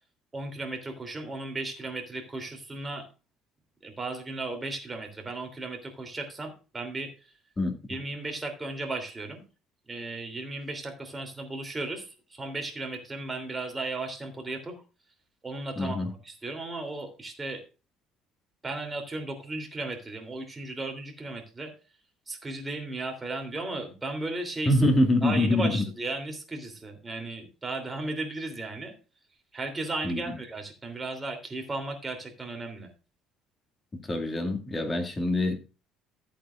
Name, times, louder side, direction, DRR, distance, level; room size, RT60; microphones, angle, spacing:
voice 1, 0.3-3.1 3.8-7.1 7.9-9.4 9.9-14.8 15.4-16.0 16.2-17.6 18.6-21.7 22.3-24.8 25.2-28.9 29.5-32.9, right 2 dB, 15° right, 3.0 m, -35 dB
voice 2, 15.8-16.1 24.7-25.8 30.0-30.4 34.0-35.6, left 1 dB, 20° left, 2.2 m, -25 dB
14.0 x 8.5 x 2.4 m
cardioid pair, 115°, 0 cm